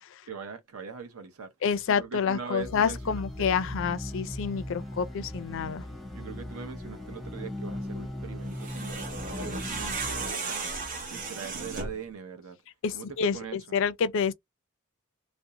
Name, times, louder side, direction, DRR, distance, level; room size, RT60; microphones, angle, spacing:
voice 1, 0.2-1.5 1.9-3.5 6.1-10.7 11.1-12.6 12.9-13.8, right 6 dB, 85° right, 0.7 m, -41 dB
voice 2, 1.6-5.9 12.8-14.3, left 6 dB, 60° left, 0.4 m, -28 dB
sound 1, 2.6-10.3, left 1 dB, ahead, 0.6 m, -38 dB
sound 2, 8.5-12.1, right 4 dB, 40° right, 0.7 m, -35 dB
2.5 x 2.1 x 2.7 m
head